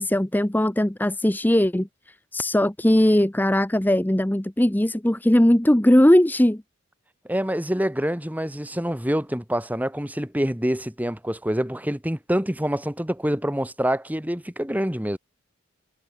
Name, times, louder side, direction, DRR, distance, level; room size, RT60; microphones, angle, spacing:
voice 1, 0.0-6.6, left 1 dB, 10° left, 0.7 m, -19 dB
voice 2, 7.3-15.2, equal, 5° right, 2.0 m, -26 dB
head